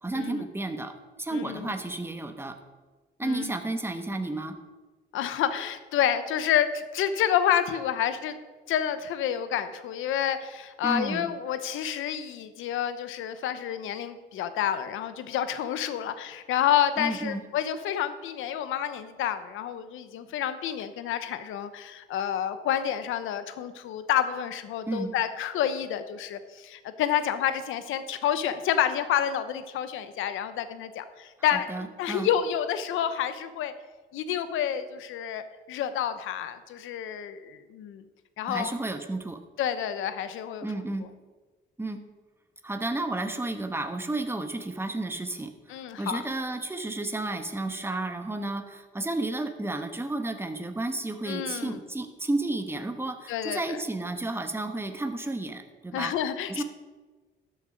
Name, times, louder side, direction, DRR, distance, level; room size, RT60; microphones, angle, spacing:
voice 1, 0.0-2.5 3.2-4.5 10.8-11.3 17.0-17.4 24.9-25.1 31.5-32.3 38.5-39.4 40.6-41.1 41.8-42.0 42.6-45.5 46.0-56.1 56.5-56.6, right 2 dB, 10° right, 7 dB, 1.2 m, -32 dB
voice 2, 1.3-1.7 3.2-3.6 5.1-8.3 8.7-33.7 34.1-35.4 35.7-38.0 38.4-38.7 39.6-40.7 45.7-46.2 51.3-51.8 53.3-53.8 55.9-56.6, left 10 dB, 85° left, 11 dB, 0.9 m, -29 dB
12.5 x 7.5 x 5.1 m, 1.3 s
cardioid pair, 90°, 20 cm